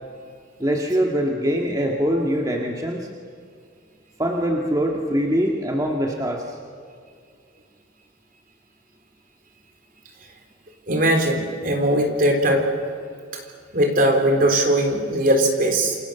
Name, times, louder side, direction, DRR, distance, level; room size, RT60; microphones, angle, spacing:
voice 1, 0.6-3.1 4.2-6.6, equal, 20° right, 0 dB, 1.9 m, -23 dB
voice 2, 10.9-12.7 13.7-16.0, right 1 dB, 45° right, 4 dB, 4.0 m, -19 dB
29.0 x 26.0 x 7.1 m, 2.2 s
head